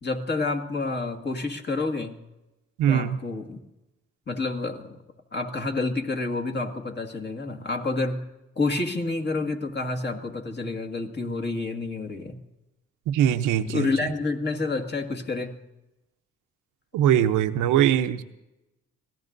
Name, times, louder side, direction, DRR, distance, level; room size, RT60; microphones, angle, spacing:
voice 1, 0.0-2.3 2.9-3.6 4.3-5.0 5.3-8.3 8.6-12.4 13.7-15.6, left 3 dB, 35° left, 4 dB, 1.9 m, -29 dB
voice 2, 2.8-3.2 13.1-13.9 16.9-18.2, right 10 dB, 90° right, 8 dB, 0.8 m, -21 dB
25.5 x 17.5 x 2.6 m, 0.95 s
cardioid pair, 90°, 30 cm